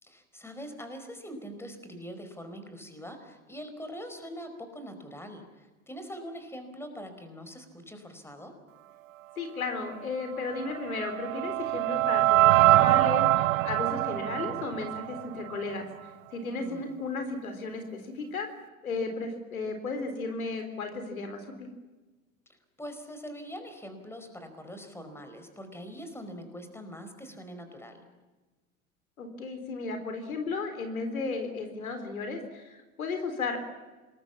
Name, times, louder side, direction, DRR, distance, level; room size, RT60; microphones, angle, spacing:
voice 1, 0.0-8.5 16.5-17.0 22.8-28.0, equal, 5° left, 7 dB, 5.0 m, -43 dB
voice 2, 9.4-15.9 16.3-18.5 18.8-21.7 29.2-33.6, left 3 dB, 80° left, 6 dB, 3.9 m, -34 dB
sound 1, 10.5-15.7, right 17 dB, 65° right, 0.9 m, -24 dB
26.5 x 21.0 x 7.4 m, 1.2 s
figure-of-eight pair, 85°, 42 cm